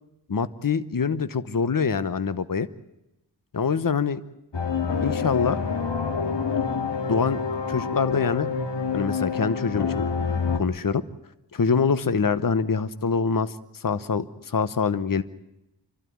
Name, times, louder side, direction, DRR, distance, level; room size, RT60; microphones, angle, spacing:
voice 1, 0.3-2.7 3.5-4.2 5.0-5.6 7.1-7.4 7.7-8.5 8.9-10.1 10.5-11.0 11.5-15.2, left 5 dB, 50° left, 14 dB, 0.9 m, -25 dB
sound 1, 4.5-10.6, left 5 dB, 80° left, 2.2 m, -27 dB
28.5 x 12.5 x 9.7 m, 0.89 s
wide cardioid pair, 65°, 42 cm